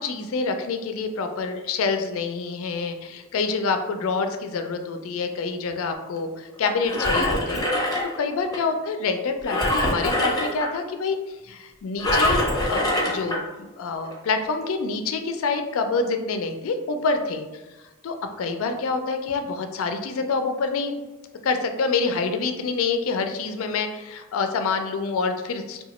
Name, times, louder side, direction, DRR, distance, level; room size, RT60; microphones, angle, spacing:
voice 1, 0.0-17.5 18.0-21.0 21.4-25.8, left 4 dB, 70° left, 6 dB, 0.4 m, -27 dB
Engine, 6.6-8.6 9.5-10.7 12.0-13.4 14.0-14.2, left 1 dB, 20° left, 0.6 m, -24 dB
2.8 x 2.2 x 4.1 m, 1.1 s
head